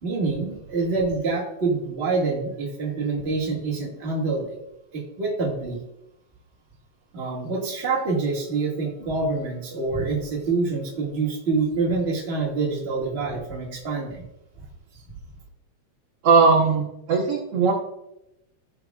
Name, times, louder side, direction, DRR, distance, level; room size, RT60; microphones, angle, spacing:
voice 1, 0.0-4.6 4.9-5.8 7.1-14.2, right 3 dB, 25° right, -2 dB, 1.7 m, -26 dB
voice 2, 16.2-17.7, right 4 dB, 60° right, -2 dB, 1.9 m, -19 dB
16.0 x 6.0 x 2.4 m, 0.84 s
omnidirectional pair, 3.4 m